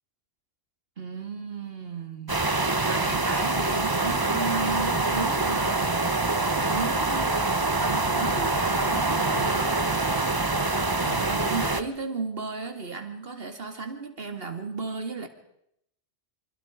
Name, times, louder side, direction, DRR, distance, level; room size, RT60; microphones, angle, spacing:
voice 1, 1.0-2.4 2.9-5.9 6.7-7.4 7.8-10.3 11.0-15.3, right 4 dB, 55° right, 6 dB, 2.6 m, -34 dB
sound 1, 2.3-11.8, right 2 dB, 20° right, 1.0 m, -25 dB
27.0 x 25.5 x 5.1 m, 0.75 s
omnidirectional pair, 1.2 m